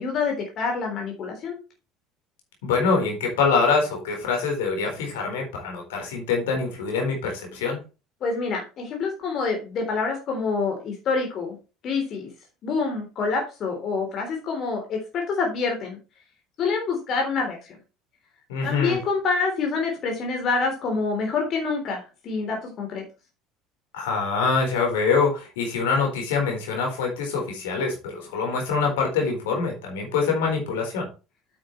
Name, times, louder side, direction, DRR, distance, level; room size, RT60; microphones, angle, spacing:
voice 1, 0.0-1.6 8.2-11.6 11.8-12.3 12.6-16.0 16.6-17.8 18.6-23.0, left 4 dB, 45° left, 2 dB, 3.5 m, -27 dB
voice 2, 2.6-7.8 18.5-19.0 23.9-31.1, left 4 dB, 65° left, 1 dB, 4.2 m, -24 dB
8.9 x 8.6 x 3.2 m, 0.31 s
figure-of-eight pair, 65°, 0 cm